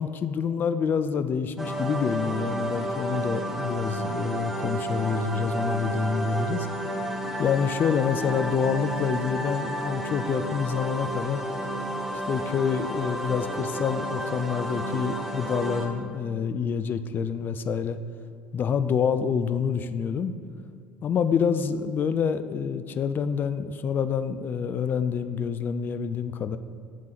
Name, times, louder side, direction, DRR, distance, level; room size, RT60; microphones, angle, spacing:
voice 1, 0.0-6.7 7.4-11.4 12.3-18.0 18.5-20.3 21.0-26.6, left 6 dB, 35° left, 11 dB, 0.3 m, -27 dB
sound 1, 1.6-15.9, right 1 dB, 5° right, 1.3 m, -31 dB
7.4 x 3.8 x 5.7 m, 2.2 s
figure-of-eight pair, 65°, 6 cm